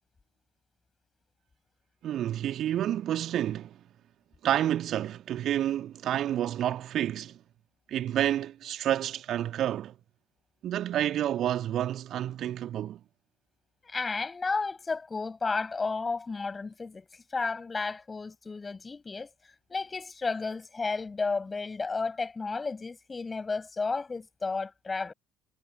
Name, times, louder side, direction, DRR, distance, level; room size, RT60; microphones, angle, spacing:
voice 1, 2.0-3.8 4.4-7.4 7.9-9.9 10.6-13.0, right 11 dB, 50° right, 1.9 m, -29 dB
voice 2, 13.8-19.3 19.7-25.1, left 4 dB, 25° left, 6.7 m, -32 dB
figure-of-eight pair, 55°, 0 cm